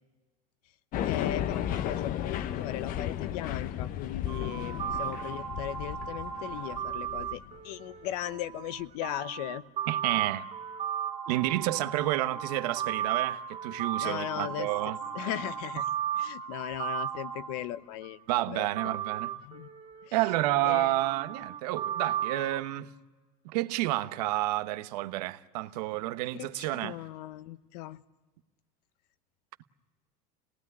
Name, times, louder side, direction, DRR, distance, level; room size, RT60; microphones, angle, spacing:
sound 1, 0.9-7.5, left 10 dB, 45° left, 0.9 m, -34 dB
voice 1, 1.0-9.6 14.0-18.2 18.5-19.0 19.4-19.7 20.0-20.2 20.6-21.0 26.3-28.0, left 13 dB, 80° left, 1.0 m, -38 dB
sound 2, 4.3-18.1 18.8-22.6, right 9 dB, 35° right, 2.3 m, -35 dB
voice 2, 9.9-10.4 11.3-15.0 18.3-19.3 20.1-22.9 23.4-26.9, right 16 dB, 85° right, 1.1 m, -30 dB
27.0 x 19.0 x 9.6 m
supercardioid pair, 140°, 20 cm